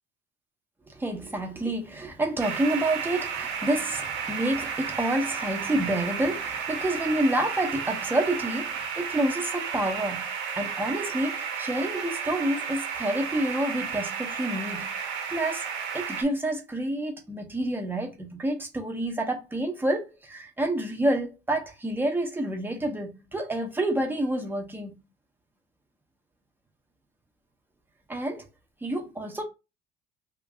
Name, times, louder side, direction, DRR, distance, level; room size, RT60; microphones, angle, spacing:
voice 1, 0.9-10.3 10.5-15.6 15.9-25.0 28.1-28.4 28.8-29.4, right 1 dB, 10° right, 0.9 m, -28 dB
sound 1, 2.4-16.2, right 6 dB, 80° right, 1.0 m, -33 dB
2.9 x 2.6 x 3.5 m
cardioid pair, 115°, 20 cm